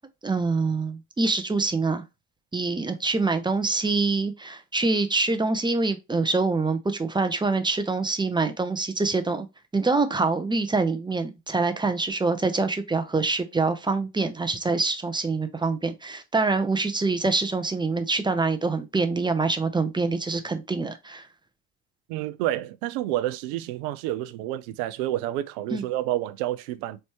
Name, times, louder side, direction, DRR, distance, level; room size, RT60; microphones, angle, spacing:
voice 1, 0.2-2.0 2.5-9.5 9.7-21.3 25.7-25.8, right 3 dB, 10° right, 0.6 m, -25 dB
voice 2, 22.1-27.0, right 14 dB, 60° right, 0.6 m, -29 dB
4.4 x 3.2 x 2.9 m
figure-of-eight pair, 60°, 49 cm